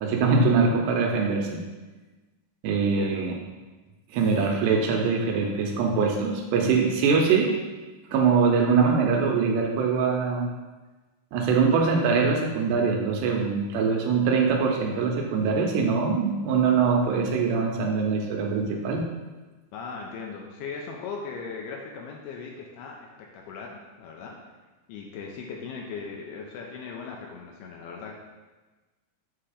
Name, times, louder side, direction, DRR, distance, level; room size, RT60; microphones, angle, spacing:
voice 1, 0.0-1.6 2.6-3.3 4.1-7.5 8.1-10.5 11.3-19.1, right 5 dB, 80° right, 1 dB, 2.7 m, -23 dB
voice 2, 2.8-3.3 19.7-24.4 24.9-28.2, left 5 dB, 80° left, 0 dB, 2.4 m, -38 dB
7.7 x 2.9 x 4.9 m, 1.2 s
omnidirectional pair, 4.9 m